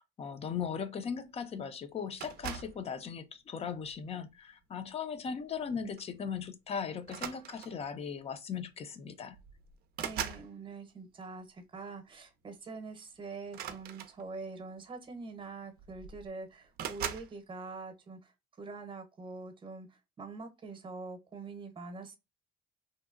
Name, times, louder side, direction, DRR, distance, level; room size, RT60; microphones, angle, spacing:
voice 1, 0.0-9.4, left 6 dB, 35° left, 0.5 m, -38 dB
sound 1, 2.2-2.8 3.7-4.0 5.5-5.7 6.0-6.2 7.0-7.9 8.9-9.0 9.3-10.5 13.4-14.5 15.4-15.5 15.8-16.3 16.8-17.3, right 9 dB, 65° right, 0.4 m, -40 dB
voice 2, 10.0-22.2, right 3 dB, 30° right, 0.8 m, -44 dB
2.8 x 2.1 x 2.4 m
cardioid pair, 110°, 17 cm